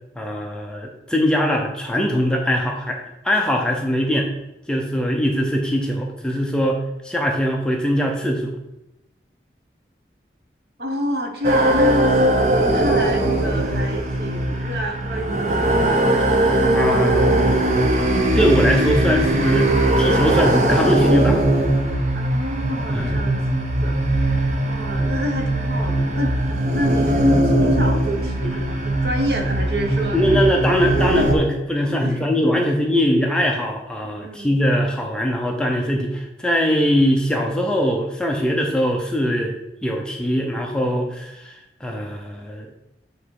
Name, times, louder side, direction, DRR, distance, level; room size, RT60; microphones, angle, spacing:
voice 1, 0.2-4.3 4.7-6.8 7.0-8.5 16.7-17.6 18.3-21.4 22.9-23.1 30.1-39.5 39.8-42.7, equal, 5° left, 1 dB, 0.7 m, -21 dB
voice 2, 10.8-15.8 22.1-23.4 23.8-24.0 24.6-26.4 26.7-30.5 32.0-32.7 34.1-34.5, equal, 60° right, 3 dB, 1.2 m, -28 dB
sound 1, 11.4-31.3, right 1 dB, 40° right, 0.8 m, -20 dB
8.3 x 3.2 x 4.8 m, 0.91 s
head